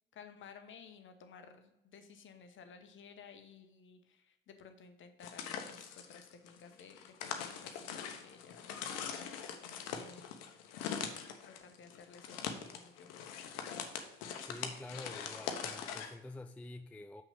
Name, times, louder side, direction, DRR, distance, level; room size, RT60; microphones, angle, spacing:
voice 1, 0.1-8.7 9.2-9.3 9.9-10.2 10.7-11.0 11.4-13.4, left 6 dB, 40° left, 7 dB, 1.1 m, -56 dB
sound 1, 5.2-16.1, left 7 dB, 60° left, 1.0 m, -42 dB
voice 2, 14.4-17.2, left 2 dB, 5° left, 8 dB, 0.3 m, -48 dB
6.0 x 5.8 x 5.2 m, 0.91 s
figure-of-eight pair, 55°, 29 cm